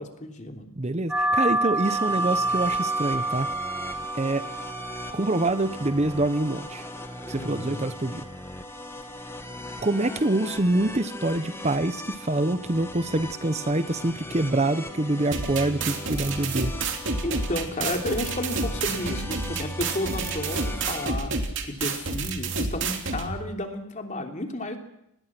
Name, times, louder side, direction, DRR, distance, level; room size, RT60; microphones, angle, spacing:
voice 1, 0.0-0.7 7.3-7.8 17.2-21.3 21.6-24.8, left 1 dB, 35° left, 4 dB, 3.2 m, -32 dB
voice 2, 0.8-3.5 4.1-4.5 5.1-6.9 7.3-8.2 9.8-16.7, right 2 dB, 30° right, 12 dB, 0.8 m, -25 dB
sound 1, 1.1-10.2, right 2 dB, 5° right, 3.1 m, -30 dB
sound 2, 1.8-21.1, left 2 dB, 10° left, 1.7 m, -39 dB
sound 3, 15.3-23.3, right 3 dB, 55° right, 3.1 m, -29 dB
26.0 x 20.0 x 6.1 m, 0.78 s
head